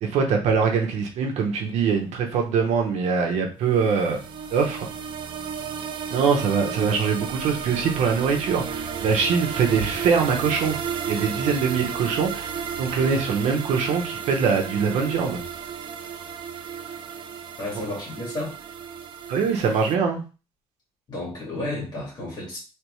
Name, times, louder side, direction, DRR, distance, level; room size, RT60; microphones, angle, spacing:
voice 1, 0.0-4.2 4.5-4.9 6.1-10.8 11.1-12.5 12.8-15.4 19.3-20.2, right 5 dB, 85° right, 2 dB, 0.9 m, -23 dB
sound 1, 3.7-20.0, right 7 dB, 45° right, 0.4 m, -33 dB
voice 2, 17.6-18.5 21.1-22.6, left 1 dB, 35° left, -4 dB, 1.9 m, -32 dB
3.4 x 3.3 x 3.1 m, 0.32 s
cardioid pair, 170°, 11 cm